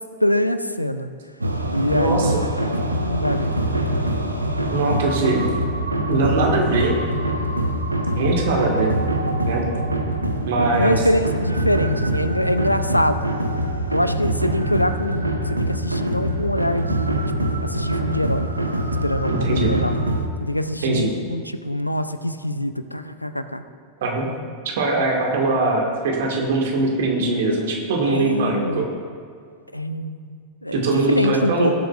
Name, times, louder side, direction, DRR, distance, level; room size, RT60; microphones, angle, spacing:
voice 1, 0.2-1.1 1.7-2.4 2.9-4.2 8.2-8.5 10.8-13.3 13.9-18.5 19.0-19.9 20.4-23.6 28.1-28.9 29.7-30.4 30.6-31.7, left 1 dB, 90° left, 10 dB, 0.4 m, -24 dB
sound 1, 1.4-20.3, right 1 dB, 85° right, 0.7 m, -24 dB
voice 2, 1.9-2.5 4.7-5.4 6.1-6.9 8.1-8.9 9.4-9.7 10.4-11.0 19.3-19.7 20.8-21.1 24.0-24.3 24.7-28.8 30.7-31.7, right 3 dB, 55° right, 0 dB, 1.7 m, -21 dB
17.5 x 7.8 x 2.5 m, 2.2 s
figure-of-eight pair, 90°, 0 cm